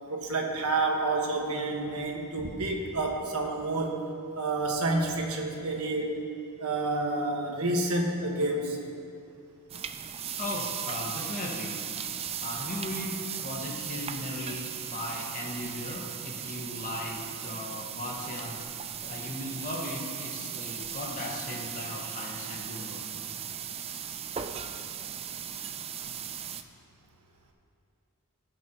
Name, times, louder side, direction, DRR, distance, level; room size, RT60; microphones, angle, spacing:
voice 1, 0.1-4.0 4.3-6.1 6.6-8.8, right 2 dB, 75° right, 0 dB, 1.4 m, -29 dB
sound 1, 9.7-26.6, right 8 dB, 25° right, 0.4 m, -37 dB
voice 2, 10.4-12.1 12.4-18.6 19.0-23.0 26.0-26.1, left 1 dB, 35° left, -2 dB, 1.6 m, -37 dB
18.5 x 7.1 x 2.9 m, 2.4 s
head